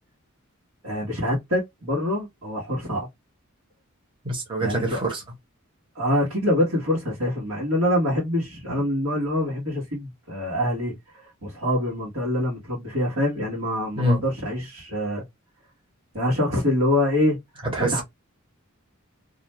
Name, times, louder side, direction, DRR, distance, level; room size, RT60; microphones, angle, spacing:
voice 1, 0.8-3.1 4.6-5.0 5.9-15.2 16.1-17.4 17.8-18.0, left 1 dB, 85° right, 1.2 m, -25 dB
voice 2, 4.2-5.2 14.0-14.2 17.6-18.0, right 1 dB, 25° right, 0.9 m, -25 dB
2.4 x 2.2 x 2.9 m
head